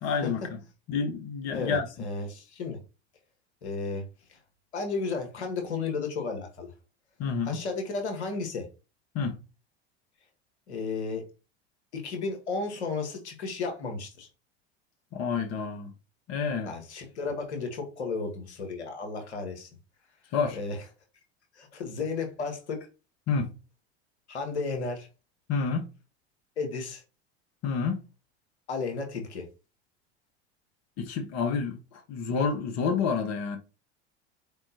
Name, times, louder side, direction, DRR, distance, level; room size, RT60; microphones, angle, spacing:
voice 1, 0.0-0.4 0.9-1.8 7.2-7.6 9.1-9.4 15.1-15.9 16.3-16.7 20.3-20.6 23.3-23.5 25.5-25.9 27.6-28.0 31.0-33.6, left 5 dB, 50° left, 1.1 m, -29 dB
voice 2, 1.5-2.8 3.6-4.0 4.3-4.4 4.7-6.7 7.5-8.7 10.7-11.2 11.9-14.3 16.7-19.7 20.5-20.8 21.5-22.9 24.3-25.1 26.6-27.0 28.7-29.5, left 4 dB, 85° left, 1.3 m, -33 dB
4.4 x 3.6 x 2.8 m
hypercardioid pair, 80°, 33 cm